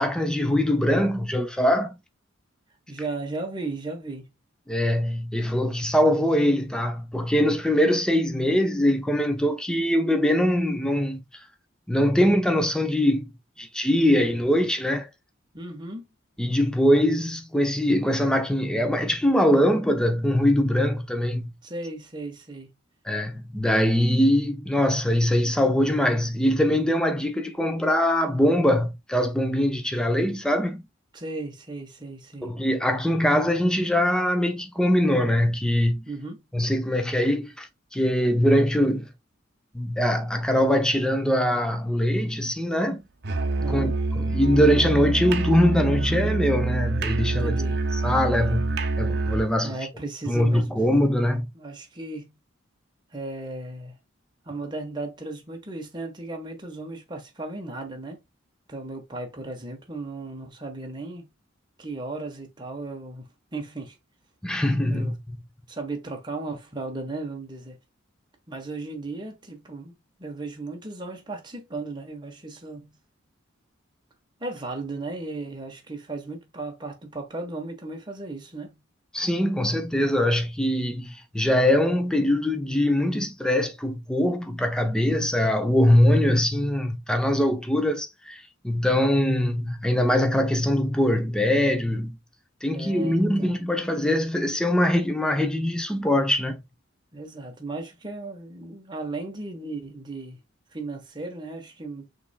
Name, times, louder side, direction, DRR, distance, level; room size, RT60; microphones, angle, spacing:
voice 1, 0.0-2.0 4.7-11.2 11.9-13.3 13.6-15.1 16.4-21.5 23.1-30.8 32.4-36.0 36.5-39.1 39.7-43.0 43.7-47.6 48.0-49.8 50.3-51.5 64.4-65.4 79.1-92.2 92.6-96.6, left 1 dB, 5° left, 0.6 m, -22 dB
voice 2, 2.9-4.3 15.5-16.1 21.6-22.7 31.1-32.5 36.1-36.4 43.6-43.9 47.4-47.8 49.6-50.7 51.5-52.4 53.1-53.9 54.4-58.2 58.7-61.3 61.8-64.0 64.9-65.1 65.7-67.8 68.5-73.0 74.4-78.8 92.7-93.5 97.1-100.4 100.7-102.2, right 2 dB, 25° right, 1.2 m, -36 dB
Musical instrument, 43.2-49.6, right 2 dB, 55° right, 0.7 m, -26 dB
5.9 x 3.3 x 2.3 m
head